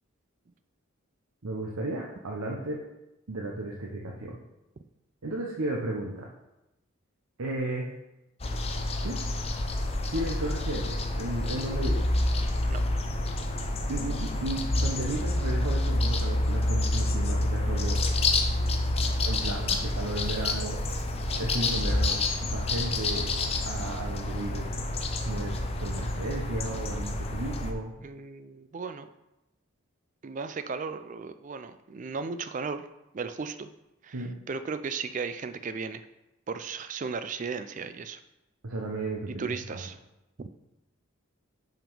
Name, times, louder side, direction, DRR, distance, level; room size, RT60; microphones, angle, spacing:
voice 1, 1.4-2.8 3.3-4.4 5.2-6.3 7.4-7.9 9.0-9.2 10.1-12.0 13.9-18.0 19.2-20.8 21.4-23.3 23.6-24.7 25.2-27.9 34.1-34.3 38.6-39.8, right 1 dB, 90° right, -1 dB, 0.9 m, -34 dB
sound 1, 8.4-27.7, left 2 dB, 30° left, 0.6 m, -28 dB
voice 2, 28.0-29.1 30.2-32.9 33.1-33.7 34.0-36.0 36.5-38.2 39.3-40.0 40.4-40.5, right 5 dB, 35° right, 11 dB, 0.3 m, -36 dB
5.8 x 5.2 x 5.4 m, 0.94 s
head